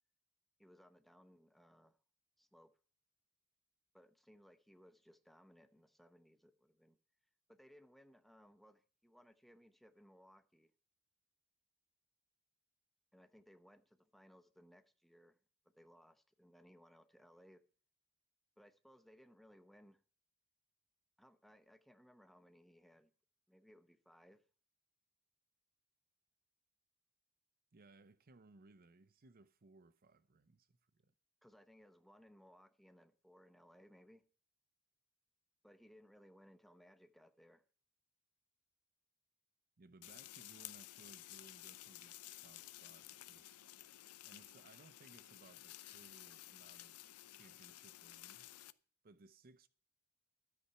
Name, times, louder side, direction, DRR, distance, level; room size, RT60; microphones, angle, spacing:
voice 1, 0.6-2.0 2.4-2.7 3.9-7.0 7.5-10.7 13.1-15.4 15.8-17.6 18.6-20.0 21.2-23.1 23.5-24.4 31.4-34.2 35.6-37.6, equal, ahead, 0.9 m, -64 dB
voice 2, 27.7-31.1 39.8-43.6 44.2-47.0 47.3-48.5 49.0-49.7, right 3 dB, 40° right, 0.6 m, -64 dB
sound 1, 40.0-48.7, left 15 dB, 85° left, 0.6 m, -54 dB
13.0 x 8.5 x 5.7 m
head